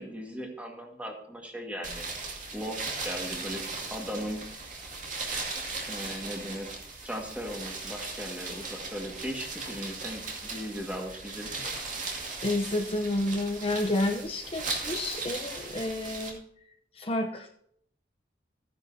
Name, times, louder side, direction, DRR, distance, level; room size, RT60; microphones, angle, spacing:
voice 1, 0.0-2.1 2.5-4.4 5.9-6.8 7.0-11.7, equal, 10° right, 1 dB, 1.8 m, -38 dB
sound 1, 1.8-16.3, right 3 dB, 45° right, 2.3 m, -38 dB
voice 2, 12.4-16.4 16.9-17.5, left 1 dB, 30° left, 2 dB, 0.7 m, -30 dB
14.5 x 9.9 x 2.8 m, 0.67 s
head